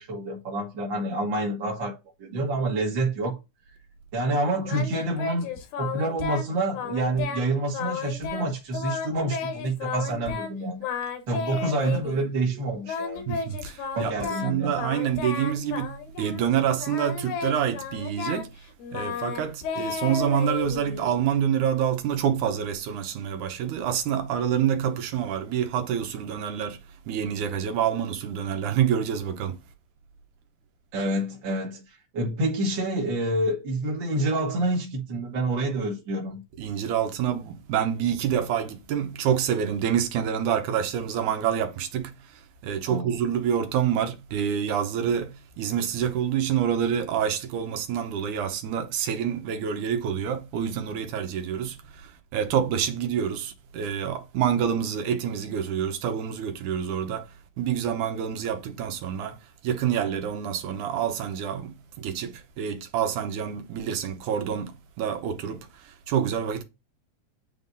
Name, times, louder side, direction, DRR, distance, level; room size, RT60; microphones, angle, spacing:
voice 1, 0.0-3.4 4.1-10.8 11.3-13.2 13.9-14.7 30.9-36.4 42.9-43.2, right 2 dB, 45° right, 1.9 m, -28 dB
Singing, 4.7-6.5 6.7-7.5 7.7-8.5 8.7-10.5 10.8-12.3 12.9-16.5 16.8-21.2, left 6 dB, 75° left, 2.6 m, -33 dB
voice 2, 13.3-18.5 18.9-26.8 27.1-29.6 36.6-42.1 42.6-57.3 57.6-59.4 59.6-66.6, right 9 dB, 75° right, 2.4 m, -27 dB
9.4 x 3.9 x 2.6 m
omnidirectional pair, 3.6 m